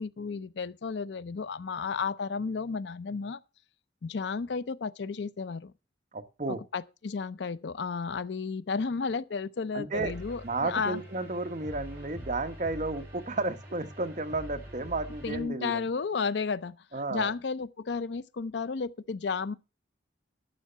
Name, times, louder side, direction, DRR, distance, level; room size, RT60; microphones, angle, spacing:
voice 1, 0.0-3.4 4.0-5.7 6.5-11.0 15.2-16.8 17.1-19.5, left 5 dB, 65° left, 0.5 m, -33 dB
voice 2, 6.1-6.6 9.7-10.1 10.4-15.9 16.9-17.3, right 2 dB, 40° right, 1.1 m, -33 dB
sound 1, 9.9-15.4, equal, 15° right, 7.9 m, -45 dB
12.0 x 7.0 x 5.6 m
head